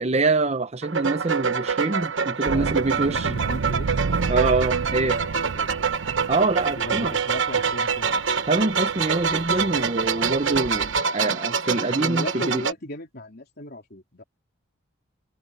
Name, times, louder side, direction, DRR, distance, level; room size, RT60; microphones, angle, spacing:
voice 1, 0.0-3.3 4.3-5.2 6.3-7.2 8.5-12.6, right 3 dB, 30° right, 0.7 m, -25 dB
sound 1, 0.8-12.7, right 6 dB, 65° right, 1.1 m, -26 dB
voice 2, 2.4-4.5 4.9-5.8 6.8-8.2 11.9-14.2, left 1 dB, 50° left, 3.6 m, -37 dB
sound 2, 2.4-11.0, right 4 dB, 85° right, 0.6 m, -32 dB
head